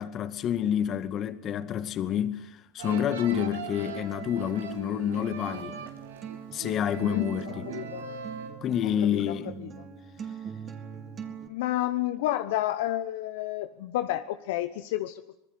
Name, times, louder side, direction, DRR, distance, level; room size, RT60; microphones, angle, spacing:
voice 1, 0.0-5.8 6.5-7.7 8.6-9.5, left 9 dB, 40° left, 2.1 m, -28 dB
sound 1, 2.8-8.5, right 6 dB, 80° right, 4.1 m, -40 dB
Acoustic guitar, 3.5-11.5, right 7 dB, 35° right, 3.8 m, -43 dB
voice 2, 6.9-8.1 9.0-9.7 11.5-15.4, left 14 dB, 70° left, 1.1 m, -31 dB
26.0 x 20.5 x 8.4 m
hypercardioid pair, 85°, 0 cm